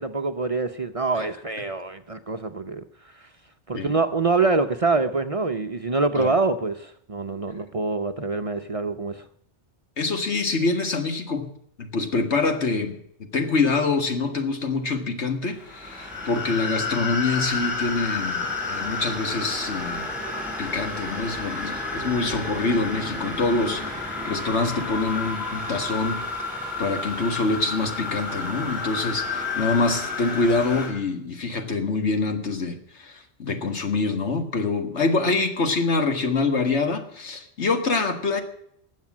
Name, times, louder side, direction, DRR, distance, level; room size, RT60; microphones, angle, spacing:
voice 1, 0.0-2.8 3.7-9.3, right 3 dB, 35° right, 0.7 m, -25 dB
voice 2, 10.0-11.5 11.8-20.1 20.6-26.2 26.8-38.4, left 3 dB, 80° left, 2.0 m, -25 dB
sound 1, 15.5-30.9, left 3 dB, 5° right, 7.1 m, -30 dB
20.0 x 7.4 x 7.3 m
omnidirectional pair, 1.1 m